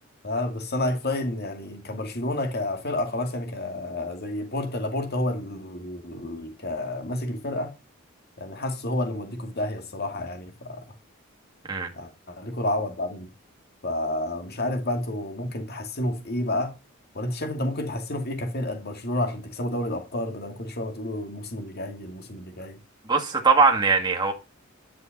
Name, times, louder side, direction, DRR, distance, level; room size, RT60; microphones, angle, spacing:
voice 1, 0.2-7.7 8.4-10.8 11.9-13.3 13.8-16.7 17.1-22.8, left 1 dB, 50° left, 2.3 m, -30 dB
voice 2, 23.1-24.3, right 4 dB, 20° right, 1.9 m, -20 dB
10.5 x 6.2 x 5.9 m
head